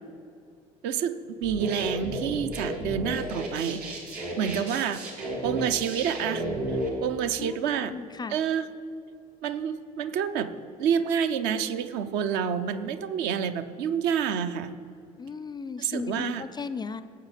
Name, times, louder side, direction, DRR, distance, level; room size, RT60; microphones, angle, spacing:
voice 1, 0.8-4.0 4.4-5.0 5.4-7.9 8.3-8.7 9.4-10.5 10.8-14.7 15.8-16.4, right 8 dB, 60° right, 10 dB, 0.7 m, -28 dB
sound 1, 1.4-6.9, right 1 dB, 75° right, 1.9 m, -33 dB
voice 2, 7.9-8.4 15.2-17.0, left 5 dB, 20° left, 14 dB, 0.4 m, -35 dB
17.5 x 7.6 x 3.3 m, 2.5 s
figure-of-eight pair, 55°, 20 cm